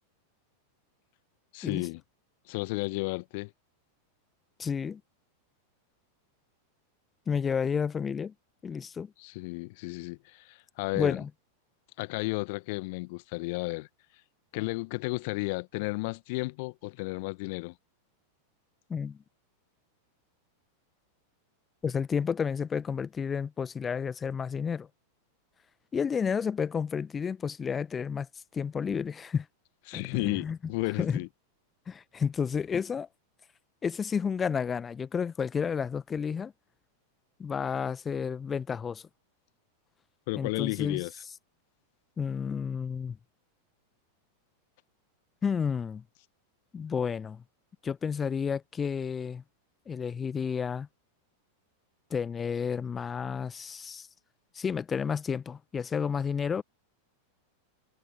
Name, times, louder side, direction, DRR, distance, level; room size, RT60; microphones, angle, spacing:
voice 1, 1.5-2.0 2.5-3.5 9.2-11.2 12.0-13.9 14.5-17.7 29.9-31.3 40.3-41.1, left 26 dB, 50° left, 1.2 m, -33 dB
voice 2, 4.6-5.0 7.3-8.3 8.6-9.1 11.0-11.3 18.9-19.2 21.8-24.9 25.9-28.3 28.5-29.4 29.9-30.6 31.0-31.2 31.9-33.1 33.8-36.5 37.4-39.0 40.4-41.0 42.2-43.2 45.4-46.0 46.7-47.4 47.8-49.4 49.9-50.9 52.1-54.1 54.5-56.6, left 6 dB, 20° left, 1.1 m, -31 dB
figure-of-eight pair, 90°, 0 cm